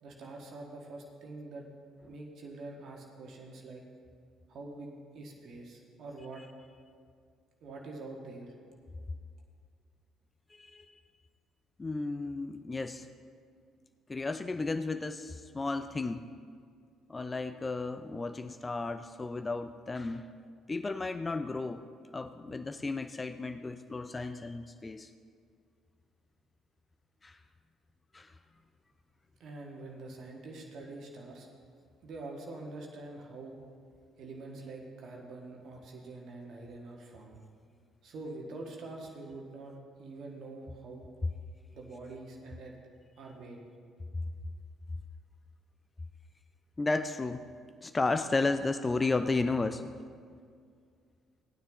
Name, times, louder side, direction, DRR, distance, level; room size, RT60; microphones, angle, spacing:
voice 1, 0.0-1.7 2.1-3.8 4.5-6.4 7.6-8.5 29.4-31.5 32.0-33.6 34.2-37.4 38.0-41.1 41.7-42.7 43.2-43.6, right 2 dB, 50° right, 0 dB, 1.7 m, -45 dB
voice 2, 10.5-10.9 11.8-13.1 14.1-16.3 17.1-20.3 20.7-21.8 22.1-25.1 27.2-27.4 28.1-28.3 46.8-47.5 47.8-49.9, left 3 dB, 25° left, 10 dB, 0.4 m, -33 dB
17.5 x 9.3 x 3.0 m, 2.2 s
figure-of-eight pair, 45°, 0 cm